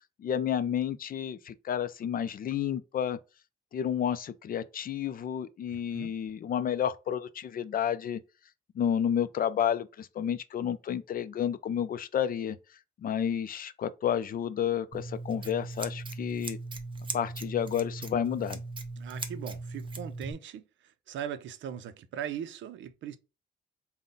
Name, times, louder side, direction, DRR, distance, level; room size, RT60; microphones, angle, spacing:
voice 1, 0.2-3.2 3.7-8.2 8.7-12.6 13.0-16.6 17.1-18.6, left 9 dB, 45° left, 0.4 m, -31 dB
Scissors, 14.9-20.3, right 3 dB, 25° right, 0.6 m, -39 dB
voice 2, 19.0-20.6 21.1-23.2, right 9 dB, 70° right, 0.5 m, -39 dB
3.7 x 2.2 x 3.8 m
cardioid pair, 90°, 20 cm